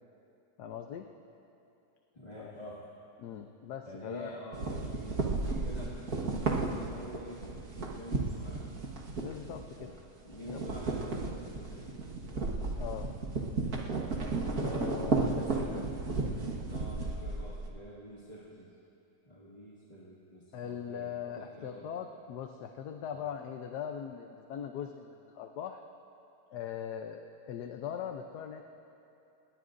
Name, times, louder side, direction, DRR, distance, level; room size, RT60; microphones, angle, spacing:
voice 1, 0.6-1.1 2.4-2.6 3.2-4.3 9.2-9.9 10.4-10.7 12.8-13.1 14.6-15.8 20.5-25.8 26.5-28.6, left 8 dB, 80° left, 4 dB, 1.3 m, -40 dB
voice 2, 2.1-2.8 3.9-8.7 9.8-10.0 10.2-12.5 14.4-18.7 19.2-21.9 23.1-23.2, equal, 25° left, -8 dB, 2.0 m, -47 dB
sound 1, 4.5-10.0 10.3-17.7, right 3 dB, 65° right, 2.0 m, -34 dB
27.5 x 20.5 x 2.6 m, 2.8 s
omnidirectional pair, 1.7 m